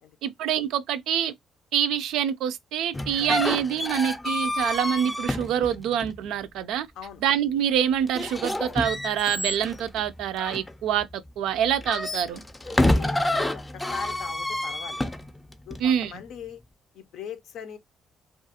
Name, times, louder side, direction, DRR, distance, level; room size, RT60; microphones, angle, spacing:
voice 1, 0.2-1.3 1.7-6.9 7.2-12.4 15.8-16.1, right 9 dB, 85° right, 0.3 m, -26 dB
sound 1, 2.9-6.3 8.1-11.1 11.7-15.9, left 1 dB, 15° left, 0.5 m, -28 dB
voice 2, 12.7-15.1 15.7-16.6 16.9-17.8, left 7 dB, 80° left, 0.5 m, -40 dB
2.4 x 2.3 x 2.7 m
cardioid pair, 90°, 0 cm